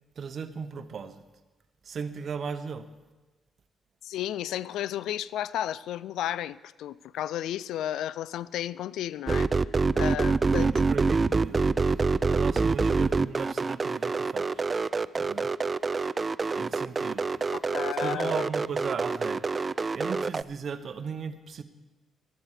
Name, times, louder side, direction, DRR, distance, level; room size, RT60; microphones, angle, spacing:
voice 1, 0.2-1.2 1.8-2.9 9.9-10.1 10.6-11.6 12.3-14.6 15.1-15.5 16.6-17.3 18.0-19.5 19.9-21.6, right 6 dB, 50° right, 11 dB, 0.9 m, -36 dB
voice 2, 4.0-9.5 10.0-10.7 17.5-18.4, left 12 dB, 80° left, 19 dB, 0.3 m, -33 dB
sound 1, 9.3-20.4, right 4 dB, 30° right, 0.3 m, -26 dB
15.0 x 12.0 x 4.9 m, 1.2 s
cardioid pair, 90°, 0 cm